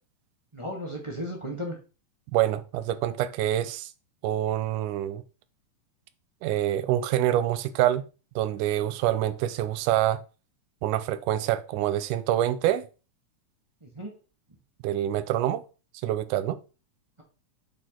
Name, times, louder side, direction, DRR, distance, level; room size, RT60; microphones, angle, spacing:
voice 1, 0.5-1.7 13.8-14.1, equal, 30° right, 0.5 m, -35 dB
voice 2, 2.3-3.9 4.2-5.2 6.4-8.0 8.4-10.2 10.8-12.9 14.8-15.6 16.0-16.6, right 12 dB, 85° right, 2.1 m, -26 dB
8.5 x 4.7 x 3.8 m
omnidirectional pair, 3.6 m